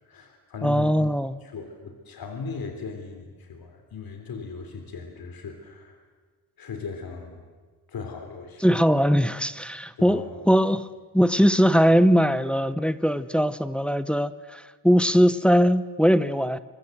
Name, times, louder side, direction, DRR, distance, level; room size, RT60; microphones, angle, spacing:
voice 1, 0.1-1.1 1.4-6.0 6.6-7.4 7.9-8.9 10.0-10.4, left 5 dB, 60° left, 3.4 m, -38 dB
voice 2, 0.6-1.3 8.6-10.9 11.1-16.6, equal, 5° left, 0.8 m, -20 dB
24.5 x 23.0 x 7.9 m
cardioid pair, 105°, 40 cm